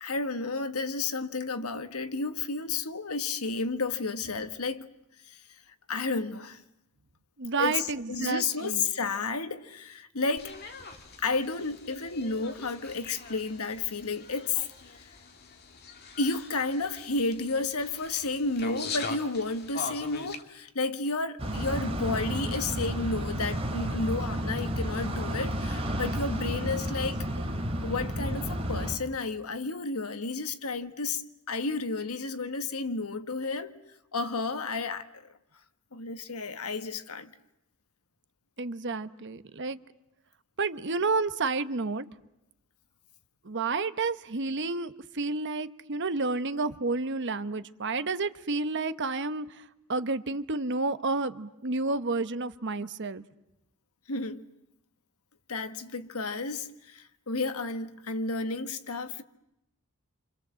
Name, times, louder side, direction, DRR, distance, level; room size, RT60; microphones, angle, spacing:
voice 1, 0.0-4.9 5.2-5.4 5.9-6.6 7.6-10.5 11.2-14.6 14.9-15.0 16.2-27.2 27.8-31.2 31.5-33.7 34.1-35.2 35.9-37.3 54.1-54.4 55.5-59.2, left 3 dB, 80° left, 1.6 m, -32 dB
voice 2, 7.4-8.8 38.6-39.8 40.6-42.0 43.4-53.2, right 3 dB, 55° right, 1.0 m, -30 dB
sound 1, 10.4-20.4, left 4 dB, 45° left, 2.5 m, -42 dB
sound 2, 21.4-29.0, equal, 25° right, 3.1 m, -32 dB
29.5 x 26.0 x 7.6 m
head